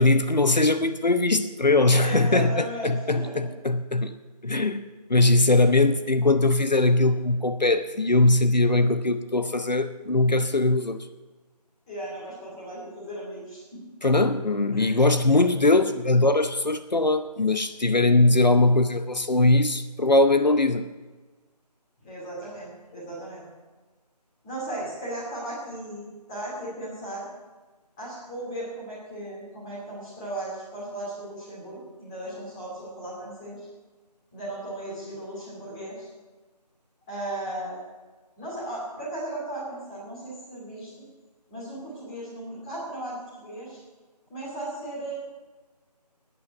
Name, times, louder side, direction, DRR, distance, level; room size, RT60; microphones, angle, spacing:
voice 1, 0.0-4.1 4.4-4.8 5.1-11.0 14.0-20.9, left 2 dB, 85° left, 10 dB, 0.9 m, -21 dB
voice 2, 1.9-3.4 5.6-5.8 11.9-13.9 14.7-15.1 22.0-23.5 24.4-27.3 28.0-33.7 34.3-36.1 37.1-37.8 38.4-41.0 41.5-43.8 44.3-45.1, right 1 dB, 10° left, -6 dB, 2.5 m, -36 dB
11.5 x 9.6 x 7.2 m, 1.3 s
figure-of-eight pair, 165°, 21 cm